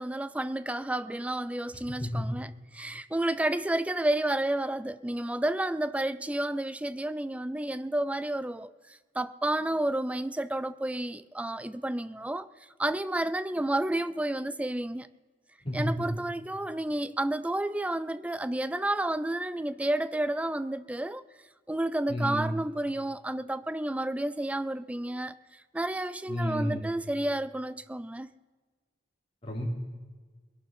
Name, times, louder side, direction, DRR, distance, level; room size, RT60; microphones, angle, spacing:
voice 1, 0.0-12.5 12.8-15.1 15.7-21.2 21.7-28.3, right 1 dB, 5° right, 0.4 m, -31 dB
voice 2, 1.9-2.2 15.6-16.1 22.1-22.5 26.3-26.8 29.4-29.7, equal, 30° left, 4.3 m, -31 dB
21.5 x 11.5 x 4.4 m
head